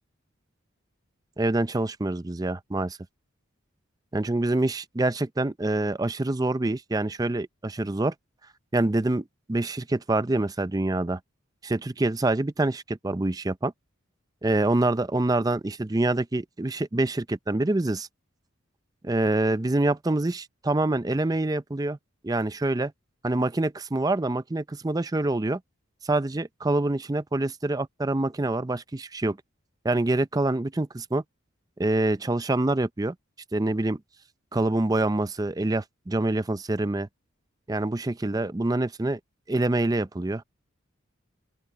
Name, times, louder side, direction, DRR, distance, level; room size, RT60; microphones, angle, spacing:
voice 1, 1.4-3.0 4.1-8.1 8.7-11.2 11.6-13.7 14.4-18.1 19.0-22.0 22.2-22.9 23.2-25.6 26.0-29.4 29.8-31.2 31.8-33.1 33.5-34.0 34.5-37.1 37.7-39.2 39.5-40.4, right 2 dB, 20° right, 0.5 m, -26 dB
open air
head